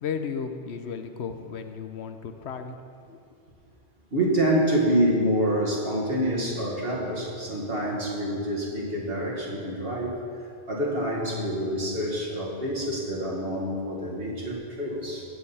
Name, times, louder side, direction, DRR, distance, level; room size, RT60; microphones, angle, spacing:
voice 1, 0.0-2.8 3.0-3.2, left 6 dB, 75° left, 7 dB, 1.0 m, -34 dB
voice 2, 4.1-10.2 10.7-15.3, right 1 dB, 60° right, -4 dB, 2.2 m, -27 dB
15.5 x 7.6 x 4.2 m, 2.3 s
omnidirectional pair, 1.1 m